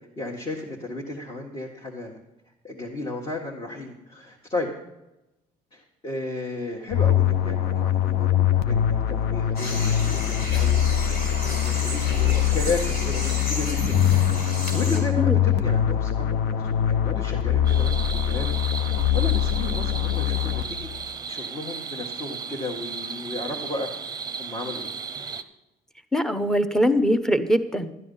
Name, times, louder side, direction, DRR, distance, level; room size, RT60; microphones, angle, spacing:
voice 1, 0.2-2.2 2.6-4.7 5.7-10.8 11.4-14.2 14.5-18.5 18.9-20.8 21.3-23.9 24.4-24.9, left 2 dB, 30° left, -1 dB, 1.6 m, -33 dB
sound 1, 6.9-21.0, left 10 dB, 85° left, 0.7 m, -23 dB
sound 2, 9.6-15.0, left 1 dB, 70° left, 4.5 m, -32 dB
sound 3, 17.6-25.4, right 6 dB, 25° right, 0.7 m, -35 dB
voice 2, 26.1-27.9, equal, 5° left, 10 dB, 0.8 m, -22 dB
12.5 x 9.8 x 5.5 m, 0.96 s
cardioid pair, 110°, 17 cm